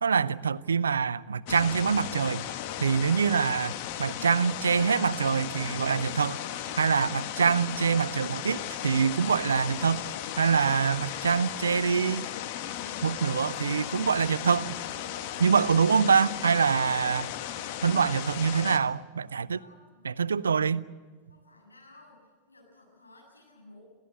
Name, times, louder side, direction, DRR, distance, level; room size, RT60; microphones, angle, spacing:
voice 1, 0.0-2.5 2.8-6.4 6.8-10.1 10.4-12.3 13.0-14.7 15.4-17.3 17.8-19.6 20.0-20.9, right 6 dB, 70° right, 0.6 m, -25 dB
sound 1, 1.5-18.8, left 11 dB, 45° left, 1.5 m, -36 dB
voice 2, 19.5-20.1 21.3-22.2 22.5-23.8, left 2 dB, 85° left, 7.9 m, -55 dB
28.0 x 15.5 x 8.0 m
figure-of-eight pair, 90°, 0 cm